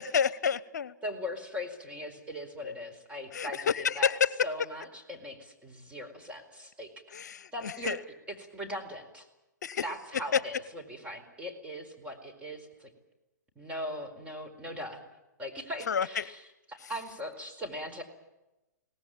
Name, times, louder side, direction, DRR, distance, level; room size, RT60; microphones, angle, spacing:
voice 1, 0.0-0.9 2.6-2.7 3.3-4.3 7.1-8.0 9.6-9.8 15.9-16.3, left 7 dB, 70° left, 19 dB, 0.9 m, -29 dB
voice 2, 1.0-4.1 4.4-7.2 7.5-8.0 8.3-9.3 9.8-12.9 13.6-15.0 15.4-18.0, equal, 10° right, 4 dB, 4.5 m, -40 dB
22.5 x 18.5 x 9.1 m, 0.98 s
hypercardioid pair, 120°, 10 cm